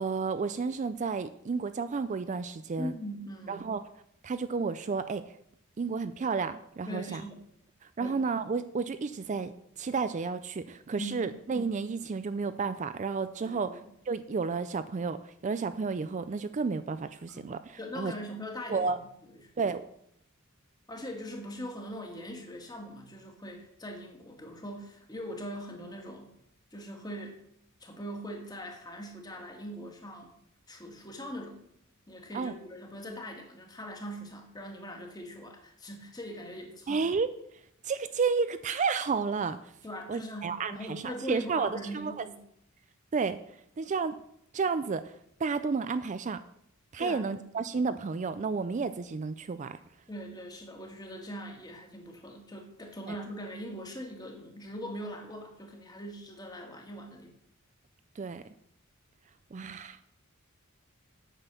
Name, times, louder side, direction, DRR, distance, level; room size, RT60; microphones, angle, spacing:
voice 1, 0.0-2.9 3.5-3.8 4.2-5.2 5.8-7.2 8.0-9.5 9.8-13.8 14.1-18.1 18.7-19.0 19.6-19.8 32.3-32.5 36.9-37.3 37.8-39.6 40.1-42.2 43.1-43.4 43.8-44.2 44.5-45.1 45.4-46.4 46.9-49.8 53.1-53.2 58.2-58.4 59.5-60.0, right 4 dB, 35° right, 12 dB, 0.4 m, -31 dB
voice 2, 2.8-3.7 6.9-7.4 8.0-8.2 11.0-11.3 13.5-13.8 17.3-17.4 17.8-19.5 20.9-26.3 26.7-27.4 27.8-30.3 30.7-31.6 32.1-37.0 39.8-42.4 47.0-47.6 50.1-57.3, equal, 20° left, 2 dB, 1.8 m, -41 dB
9.1 x 6.2 x 6.7 m, 0.72 s
head